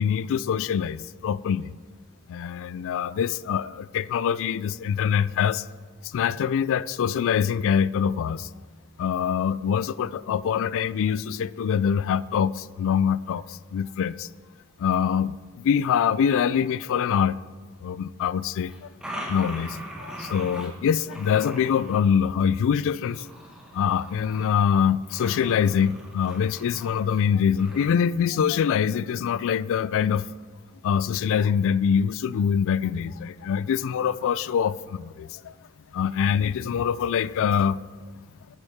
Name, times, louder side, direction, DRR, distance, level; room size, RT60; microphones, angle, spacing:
voice 1, 0.0-1.7 2.3-5.6 6.0-8.5 9.0-14.3 14.8-17.4 17.8-23.3 23.7-30.3 30.8-35.5 35.9-37.8, left 7 dB, 65° left, 0.3 m, -24 dB
sound 1, 18.7-20.7 21.0-22.0 23.0-24.6 25.1-27.2 27.6-27.9, right 1 dB, 5° right, 1.6 m, -40 dB
12.0 x 8.0 x 3.6 m
head